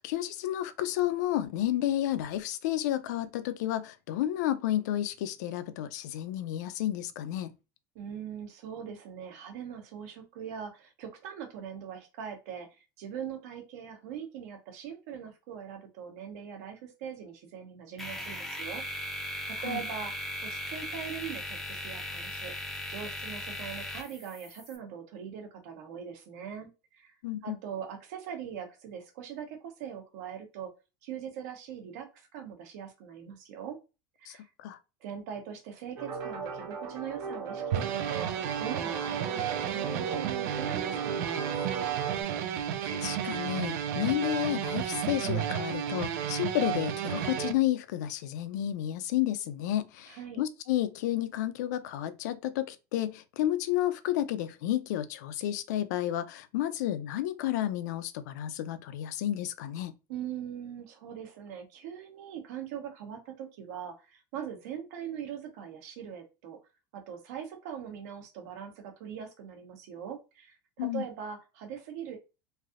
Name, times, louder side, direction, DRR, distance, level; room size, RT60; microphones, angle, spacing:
voice 1, 0.0-7.5 19.6-19.8 27.2-27.6 34.3-34.8 42.8-59.9 70.8-71.0, left 13 dB, 85° left, 0.4 m, -31 dB
voice 2, 7.9-12.7 13.0-22.5 22.9-27.1 27.4-30.7 31.0-33.8 34.2-34.5 35.0-38.3 38.6-41.6 50.1-50.4 60.1-66.6 66.9-72.2, right 8 dB, 70° right, 1.0 m, -41 dB
sound 1, 18.0-24.8, left 1 dB, 5° left, 0.4 m, -38 dB
sound 2, 36.0-42.2, right 5 dB, 40° right, 0.9 m, -37 dB
sound 3, 37.7-47.5, right 9 dB, 85° right, 0.5 m, -32 dB
3.3 x 2.7 x 2.4 m
supercardioid pair, 170°, 9 cm